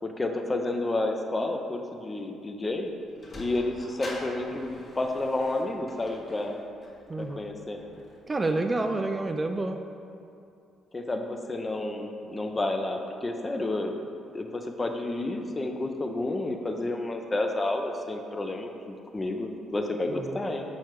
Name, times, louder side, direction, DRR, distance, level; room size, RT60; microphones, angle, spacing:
voice 1, 0.0-2.9 3.4-6.6 7.2-7.8 10.9-13.9 14.3-20.6, left 2 dB, 25° left, 4 dB, 0.6 m, -30 dB
Sliding door, 2.9-9.3, left 1 dB, 45° left, 1.4 m, -46 dB
voice 2, 7.1-7.4 8.3-9.8 20.1-20.4, right 2 dB, 25° right, 5 dB, 0.4 m, -29 dB
6.4 x 4.7 x 4.6 m, 2.5 s
cardioid pair, 95°, 0 cm